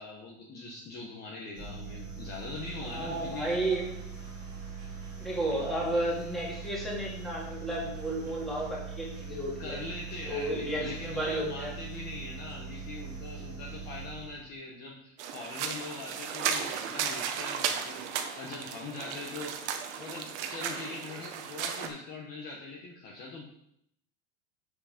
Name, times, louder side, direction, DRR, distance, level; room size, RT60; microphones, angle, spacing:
voice 1, 0.0-3.5 5.5-5.8 9.6-23.4, left 3 dB, 25° left, -2 dB, 1.2 m, -42 dB
sound 1, 1.5-14.5, right 5 dB, 20° right, 2.4 m, -42 dB
voice 2, 2.8-3.9 5.2-9.8 10.2-11.7, right 1 dB, ahead, -5 dB, 2.4 m, -32 dB
sound 2, 15.2-21.9, right 7 dB, 65° right, 1.3 m, -35 dB
7.6 x 6.9 x 5.2 m, 0.73 s
supercardioid pair, 160°, 37 cm